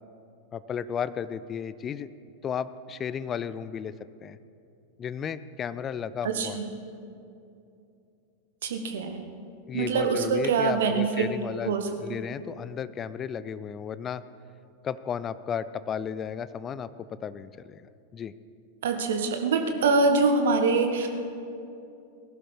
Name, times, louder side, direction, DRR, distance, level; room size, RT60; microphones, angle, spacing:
voice 1, 0.5-2.1 2.4-3.9 4.2-4.4 5.0-6.6 9.7-11.8 12.0-14.2 14.8-17.8 18.1-18.3, left 7 dB, 25° left, 15 dB, 0.5 m, -34 dB
voice 2, 6.2-6.6 8.6-9.2 9.7-11.3 11.6-11.9 18.8-21.1, right 4 dB, 60° right, 5 dB, 1.3 m, -24 dB
19.0 x 11.5 x 4.9 m, 2.7 s
figure-of-eight pair, 90°, 0 cm